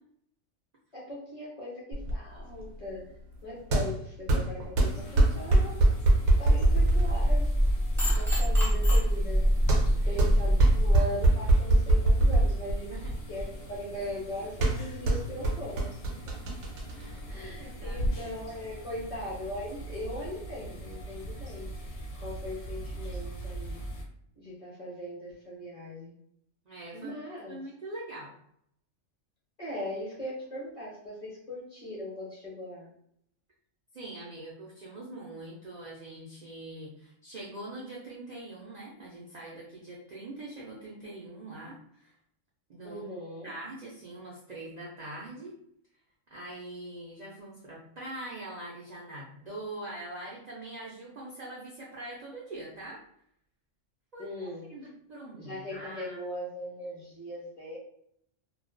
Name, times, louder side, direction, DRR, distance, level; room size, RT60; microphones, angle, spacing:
voice 1, 0.9-3.0 3.4-5.7 6.4-7.5 8.1-9.4 10.0-13.0 13.3-15.9 17.3-21.7 22.2-23.8 24.4-26.1 26.9-27.6 29.6-32.9 42.8-43.5 54.2-54.7 55.3-57.8, equal, 35° left, -6 dB, 0.7 m, -39 dB
sound 1, 1.9-18.1, right 2 dB, 75° right, 0.9 m, -26 dB
sound 2, 4.8-24.0, right 1 dB, 70° left, 0.8 m, -44 dB
sound 3, 6.7-11.0, equal, 5° left, 0.5 m, -24 dB
voice 2, 16.9-18.3 26.7-27.1 27.5-28.3 33.9-42.1 42.7-43.1 43.4-45.6 46.3-53.0 54.1-56.2, right 2 dB, 55° right, -5 dB, 0.4 m, -43 dB
2.3 x 2.2 x 2.4 m, 0.70 s
omnidirectional pair, 1.3 m